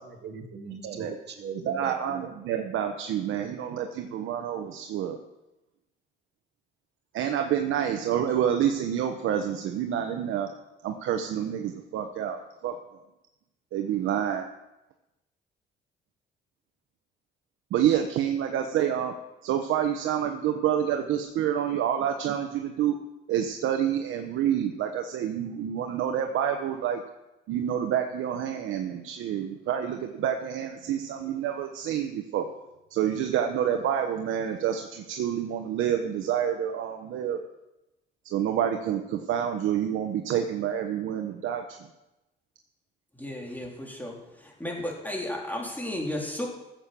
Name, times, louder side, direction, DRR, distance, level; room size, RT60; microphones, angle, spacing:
voice 1, 0.0-2.3, right 6 dB, 60° right, 4 dB, 2.0 m, -40 dB
voice 2, 0.8-1.2 1.5-5.2 7.1-10.5 10.8-12.7 13.7-14.5 17.7-19.1 19.4-23.0 23.3-27.0 27.5-32.5 32.9-37.4 38.2-41.6, right 9 dB, 85° right, 5 dB, 1.1 m, -28 dB
voice 3, 43.1-46.5, left 1 dB, 10° left, -1 dB, 3.8 m, -34 dB
14.5 x 7.7 x 6.9 m, 0.96 s
cardioid pair, 90°, 20 cm